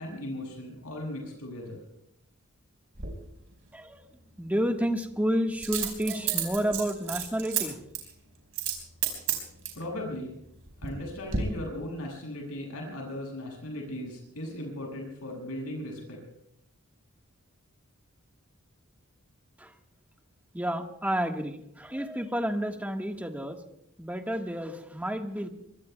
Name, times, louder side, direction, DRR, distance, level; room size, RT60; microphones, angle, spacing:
voice 1, 0.0-1.8 9.8-10.4 10.8-16.2, left 1 dB, 80° left, -1 dB, 7.3 m, -37 dB
Coin (dropping), 3.0-3.1 5.6-7.6 7.9-8.1 8.5-8.8 9.0-9.8 10.5-11.0 11.3-11.4, right 9 dB, 65° right, 5.2 m, -30 dB
voice 2, 3.7-4.0 4.4-7.8 19.6-19.7 20.5-23.6 24.0-25.5, equal, 5° right, 3 dB, 1.5 m, -30 dB
25.0 x 24.0 x 2.3 m, 0.75 s
head